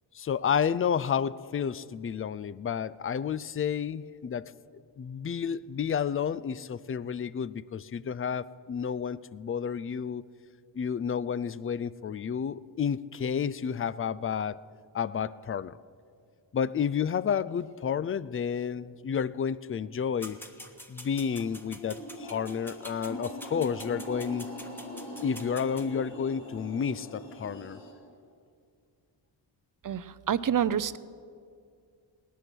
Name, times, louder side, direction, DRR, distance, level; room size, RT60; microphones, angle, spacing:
voice 1, 0.1-4.5 5.0-10.2 10.7-14.6 14.9-15.8 16.5-20.4 20.9-24.5 25.2-27.8, left 7 dB, 30° left, 19 dB, 0.4 m, -31 dB
sound 1, 20.2-25.9, equal, 5° left, 1.4 m, -47 dB
sound 2, 21.1-27.9, equal, 60° left, 4.6 m, -42 dB
voice 2, 29.8-31.0, right 9 dB, 45° right, 16 dB, 0.6 m, -28 dB
18.0 x 12.0 x 6.2 m, 2.3 s
cardioid pair, 70°, 47 cm